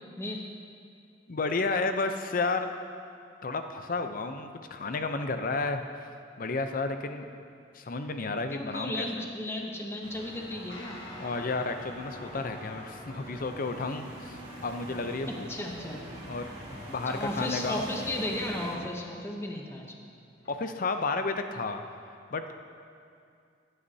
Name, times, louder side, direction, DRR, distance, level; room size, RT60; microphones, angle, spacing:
voice 1, 1.3-2.7 3.4-7.3 7.7-9.2 11.2-15.5 16.3-16.5 16.9-17.9 20.5-21.8 22.3-22.5, left 3 dB, 50° left, 7 dB, 0.6 m, -32 dB
voice 2, 8.5-11.0 15.5-16.1 17.1-19.9, left 1 dB, 15° left, 1 dB, 0.8 m, -34 dB
sound 1, 10.0-18.8, right 1 dB, 35° right, 2.5 m, -44 dB
Guitar, 10.7-20.5, left 1 dB, 75° left, 1.5 m, -49 dB
16.0 x 9.9 x 2.8 m, 2.4 s
head